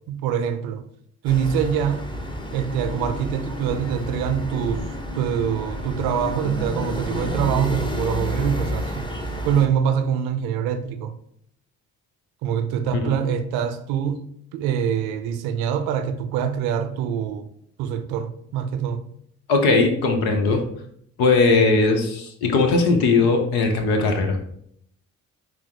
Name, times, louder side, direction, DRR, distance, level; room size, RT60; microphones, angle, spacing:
voice 1, 0.1-0.8 1.2-2.0 2.5-4.8 5.1-9.1 9.4-11.1 12.4-14.2 14.5-17.5 17.8-19.0, right 8 dB, 80° right, 0.5 m, -24 dB
sound 1, 1.3-9.7, left 1 dB, 15° left, 0.9 m, -30 dB
voice 2, 19.5-20.6 21.2-24.4, left 3 dB, 80° left, 0.7 m, -19 dB
4.7 x 2.0 x 4.6 m
hypercardioid pair, 45°, 36 cm